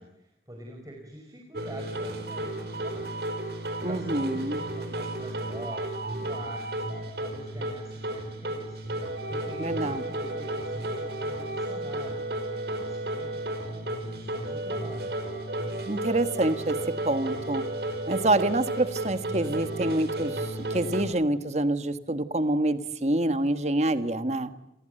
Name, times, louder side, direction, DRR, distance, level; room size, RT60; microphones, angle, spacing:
voice 1, 0.0-3.3 3.5-6.9 7.2-8.8 9.1-15.1, right 1 dB, 20° right, 1 dB, 4.9 m, -45 dB
sound 1, 1.5-21.0, right 1 dB, 60° right, 5.0 m, -33 dB
voice 2, 3.8-4.6 9.6-10.0 15.9-16.8 17.0-17.6 18.1-24.5, right 2 dB, 40° right, 10 dB, 1.6 m, -26 dB
30.0 x 23.0 x 7.9 m, 0.92 s
head